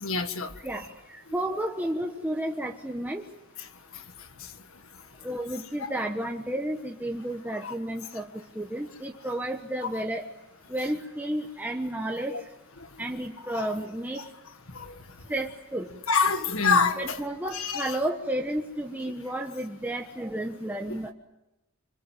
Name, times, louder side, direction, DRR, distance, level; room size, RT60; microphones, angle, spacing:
voice 1, 0.0-0.5 5.8-5.9 7.6-7.7 12.3-12.4 13.5-13.6 16.1-17.2 17.5-17.9, left 5 dB, 60° left, 9 dB, 1.7 m, -25 dB
voice 2, 0.6-3.2 5.2-10.3 10.7-12.5 13.0-14.3 15.3-15.9 17.0-21.1, right 1 dB, 10° right, 2 dB, 1.2 m, -32 dB
26.5 x 26.0 x 7.5 m, 0.96 s
head